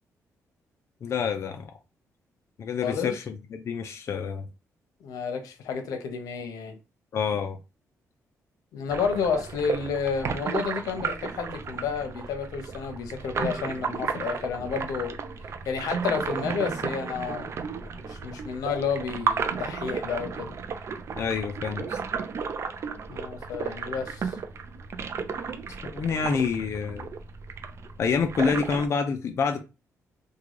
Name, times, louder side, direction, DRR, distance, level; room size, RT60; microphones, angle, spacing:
voice 1, 1.0-1.7 2.6-4.5 7.1-7.6 21.2-22.0 25.8-27.1 28.0-29.7, left 6 dB, 50° left, 0.5 m, -27 dB
voice 2, 2.8-3.1 5.0-6.8 8.7-15.1 15.6-20.5 23.1-24.3, left 6 dB, 90° left, 0.8 m, -31 dB
sound 1, 8.9-28.9, right 5 dB, 50° right, 0.4 m, -33 dB
3.7 x 2.2 x 3.1 m
cardioid pair, 105°, 6 cm